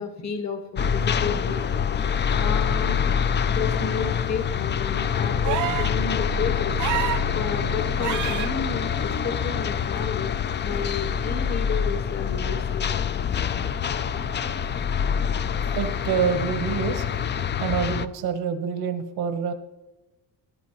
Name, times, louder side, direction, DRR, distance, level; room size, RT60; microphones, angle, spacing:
voice 1, 0.0-1.6 2.4-3.1 3.5-6.8 7.3-10.3 10.6-13.1, left 5 dB, 45° left, 6 dB, 1.5 m, -32 dB
sound 1, 0.8-18.0, left 7 dB, 30° left, 0.4 m, -25 dB
sound 2, 5.4-6.0 6.8-7.3 8.0-8.5 10.0-10.1, right 13 dB, 55° right, 0.5 m, -27 dB
voice 2, 15.5-17.0 17.6-19.5, right 7 dB, 75° right, 9 dB, 1.1 m, -27 dB
13.5 x 11.5 x 3.1 m, 1.0 s
cardioid pair, 110°, 38 cm